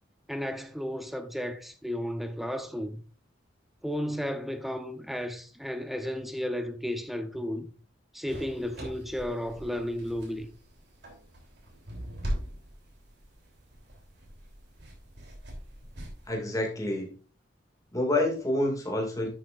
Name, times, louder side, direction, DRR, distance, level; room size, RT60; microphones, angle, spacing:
voice 1, 0.3-3.0 3.8-7.7 8.1-10.5, equal, ahead, 0.8 m, -33 dB
sound 1, 8.3-16.3, equal, 60° right, 3.2 m, -41 dB
voice 2, 16.3-17.1 17.9-19.3, left 1 dB, 20° left, 2.2 m, -28 dB
10.5 x 8.0 x 2.5 m
head